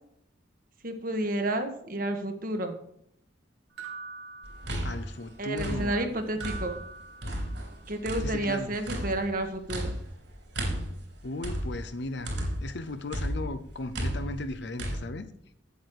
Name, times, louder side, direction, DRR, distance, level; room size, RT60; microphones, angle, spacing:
voice 1, 0.8-2.8 5.4-6.8 7.9-9.9, right 1 dB, 45° right, 1.4 m, -30 dB
sound 1, 3.8-5.2 6.4-7.9, right 5 dB, 85° right, 2.0 m, -44 dB
sound 2, 4.4-6.9 7.2-12.8 13.1-15.0, equal, 70° right, 4.1 m, -34 dB
voice 2, 4.8-6.2 8.2-8.7 11.2-15.3, left 2 dB, 60° left, 0.7 m, -36 dB
8.5 x 8.1 x 4.7 m
head